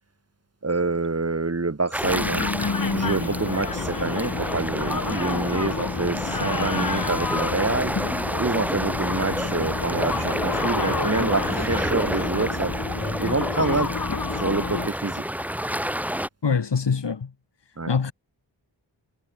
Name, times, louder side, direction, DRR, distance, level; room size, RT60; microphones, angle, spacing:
voice 1, 0.6-2.5 2.9-7.9 8.4-12.7 13.2-13.9 14.3-15.2 17.8-17.9, right 3 dB, 35° right, 3.1 m, -27 dB
sound 1, 1.9-16.3, equal, 5° right, 1.7 m, -29 dB
sound 2, 2.0-14.9, left 4 dB, 45° left, 2.3 m, -29 dB
voice 2, 16.4-17.3 17.7-18.1, left 5 dB, 65° left, 2.5 m, -24 dB
wide cardioid pair, 90°, 45 cm